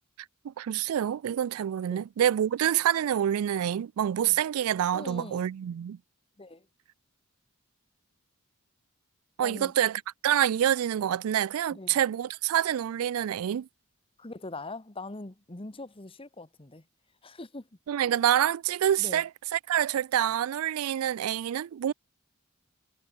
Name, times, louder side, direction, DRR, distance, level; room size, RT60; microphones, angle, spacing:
voice 1, 0.4-6.0 9.4-13.7 17.9-21.9, right 10 dB, 85° right, 0.3 m, -27 dB
voice 2, 4.9-5.5 6.4-6.6 9.4-9.7 11.7-12.0 14.2-16.8 17.2-17.7 19.0-19.2, left 2 dB, 25° left, 1.2 m, -42 dB
head